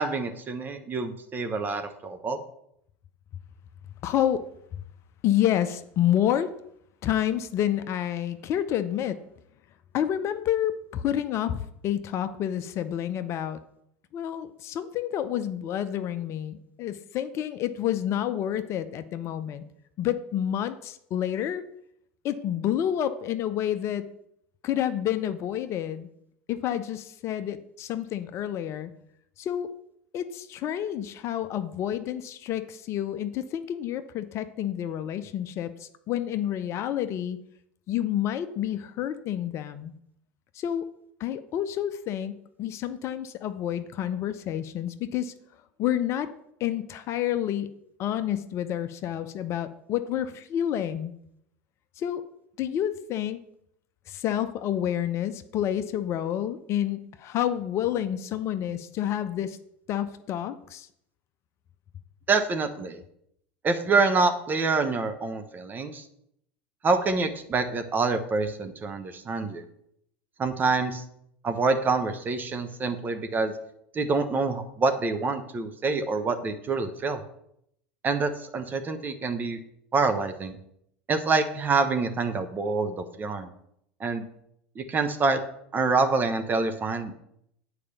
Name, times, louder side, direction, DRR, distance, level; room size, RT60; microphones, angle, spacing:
voice 1, 0.0-2.4 62.3-63.0 63.6-66.0 66.8-69.6 70.4-71.0 71.4-73.5 73.9-77.2 78.0-79.6 79.9-80.6 81.1-83.5 84.0-84.2 84.8-85.4 85.7-87.1, right 4 dB, 30° right, 7 dB, 1.0 m, -26 dB
voice 2, 4.0-4.4 5.2-6.5 7.0-9.2 9.9-13.6 14.1-19.6 20.0-21.6 22.2-24.1 24.6-26.1 26.5-28.9 29.4-29.7 30.1-37.4 37.9-39.9 40.5-40.8 41.2-45.3 45.8-46.3 46.6-47.7 48.0-51.1 52.0-52.2 52.6-53.4 54.1-59.6 59.9-60.9, left 11 dB, 45° left, 11 dB, 0.6 m, -29 dB
8.6 x 4.9 x 6.8 m, 0.73 s
hypercardioid pair, 80°, 6 cm